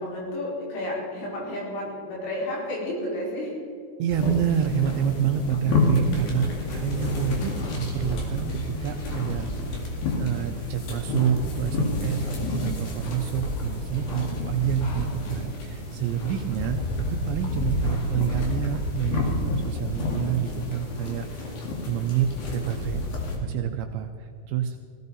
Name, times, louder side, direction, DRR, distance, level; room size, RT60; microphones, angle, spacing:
voice 1, 0.0-3.6, left 1 dB, 85° left, -5 dB, 7.6 m, -31 dB
voice 2, 4.0-9.9 10.2-16.8 17.1-21.6 21.9-23.0 23.4-24.8, right 9 dB, 80° right, 5 dB, 2.7 m, -28 dB
sound 1, 4.1-23.4, left 2 dB, 55° left, 3.6 m, -29 dB
19.0 x 16.0 x 4.1 m, 2.3 s
omnidirectional pair, 5.9 m